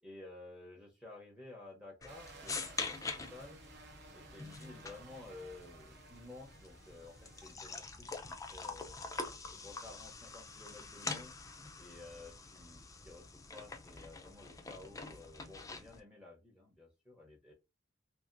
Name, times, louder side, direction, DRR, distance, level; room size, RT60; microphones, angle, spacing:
voice 1, 0.0-3.6 4.1-8.9 9.6-11.3 11.8-17.5, left 2 dB, 5° right, -1 dB, 0.7 m, -53 dB
sound 1, 2.0-16.0, left 4 dB, 15° left, 0.4 m, -45 dB
sound 2, 2.1-7.5, right 3 dB, 55° right, 0.7 m, -56 dB
2.7 x 2.7 x 2.5 m, 0.24 s
head